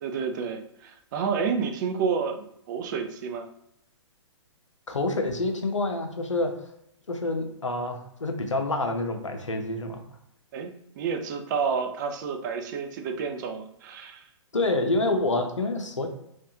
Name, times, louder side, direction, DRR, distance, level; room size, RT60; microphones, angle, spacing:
voice 1, 0.0-3.5 10.5-10.7 11.0-14.3, right 6 dB, 40° right, 6 dB, 0.6 m, -30 dB
voice 2, 4.9-6.5 7.1-10.0 14.5-16.1, left 2 dB, 85° left, 5 dB, 0.8 m, -27 dB
3.5 x 3.1 x 2.8 m, 0.75 s
figure-of-eight pair, 125°, 15 cm